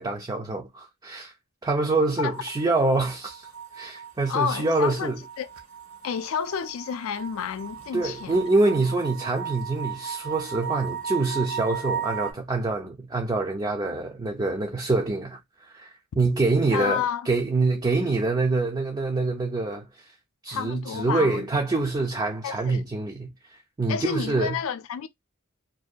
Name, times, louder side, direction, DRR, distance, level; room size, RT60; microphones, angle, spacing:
voice 1, 0.0-1.3 1.6-3.5 3.7-5.2 7.9-20.0 20.4-23.3 23.8-24.6, right 3 dB, 20° right, 0.4 m, -25 dB
sound 1, 2.3-12.3, right 8 dB, 75° right, 0.7 m, -36 dB
voice 2, 4.3-5.5 6.0-8.4 16.7-17.3 20.5-21.5 22.4-22.8 23.9-25.1, left 7 dB, 65° left, 0.3 m, -30 dB
2.6 x 2.2 x 2.4 m
head